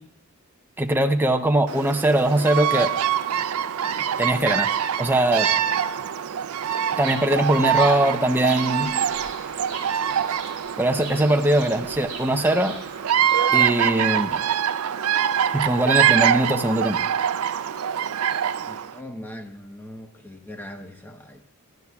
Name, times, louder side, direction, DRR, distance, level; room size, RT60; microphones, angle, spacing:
voice 1, 0.8-2.9 4.2-4.7 5.0-5.5 7.0-8.9 10.8-12.8 13.5-14.4 15.5-17.0, right 1 dB, 10° right, 5 dB, 0.7 m, -21 dB
Bird vocalization bird call bird song, 1.7-18.9, right 9 dB, 85° right, 0.5 m, -24 dB
Bird vocalization bird call bird song 2, 6.9-13.3, right 4 dB, 45° right, 5.1 m, -41 dB
voice 2, 18.6-21.4, left 1 dB, 10° left, 4 dB, 1.0 m, -40 dB
24.5 x 11.5 x 2.4 m, 0.84 s
head